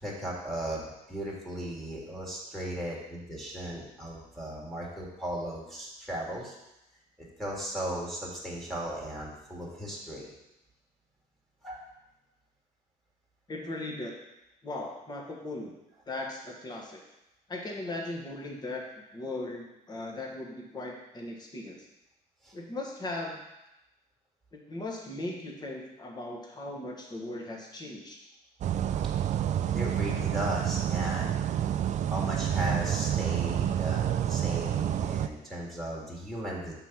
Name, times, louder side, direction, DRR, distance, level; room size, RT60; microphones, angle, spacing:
voice 1, 0.0-6.6 7.2-10.3 11.6-11.8 22.4-22.5 29.7-31.4 32.1-36.7, right 1 dB, ahead, -5 dB, 1.8 m, -36 dB
voice 2, 13.5-14.2 14.6-15.8 16.1-17.0 17.5-18.8 19.1-21.8 22.5-23.4 24.5-28.2, left 2 dB, 25° left, 0 dB, 1.3 m, -38 dB
sound 1, 28.6-35.3, right 10 dB, 45° right, 0.4 m, -28 dB
6.0 x 4.0 x 5.9 m, 0.92 s
cardioid pair, 110°, 17 cm